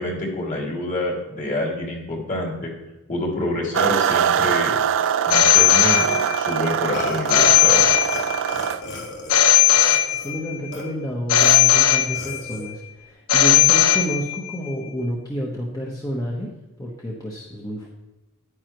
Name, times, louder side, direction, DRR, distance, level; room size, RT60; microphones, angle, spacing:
voice 1, 0.0-2.7 3.1-4.8 5.2-7.8, left 1 dB, 35° left, -1 dB, 2.3 m, -27 dB
sound 1, 3.7-8.8, right 8 dB, 60° right, 0.4 m, -23 dB
Telephone, 5.3-6.6 7.3-8.6 9.3-10.6 11.3-12.6 13.3-14.5, left 11 dB, 80° left, 0.8 m, -17 dB
Burping eructation, 6.9-8.2 8.5-10.3 10.7-10.8 11.4-11.6 12.1-12.7, left 3 dB, 50° left, 1.9 m, -31 dB
voice 2, 10.1-16.5 16.8-17.9, equal, 15° left, -3 dB, 1.1 m, -29 dB
10.5 x 9.6 x 3.0 m, 1.0 s
head